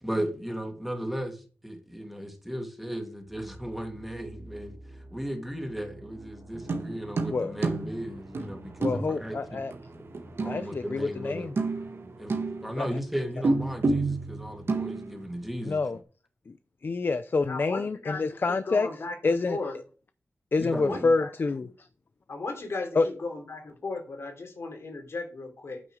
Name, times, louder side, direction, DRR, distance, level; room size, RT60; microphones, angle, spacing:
voice 1, 0.0-9.7 10.4-11.5 12.2-12.3 12.6-15.8 20.6-21.1, equal, 5° right, 2.5 m, -36 dB
sound 1, 3.3-14.8, right 2 dB, 80° right, 3.2 m, -50 dB
sound 2, 6.6-11.2 11.5-12.9 13.4-15.5 15.8-15.9, right 3 dB, 65° right, 1.4 m, -30 dB
voice 2, 8.8-9.7 10.5-11.5 12.7-12.9 15.7-16.0 16.5-16.6 16.8-18.9 19.2-19.6 20.5-21.9 23.0-23.1, left 3 dB, 50° left, 0.6 m, -27 dB
voice 3, 17.4-19.7 20.8-21.3 22.3-25.8, left 3 dB, 75° left, 3.3 m, -36 dB
9.3 x 6.1 x 6.3 m
wide cardioid pair, 90°, 4 cm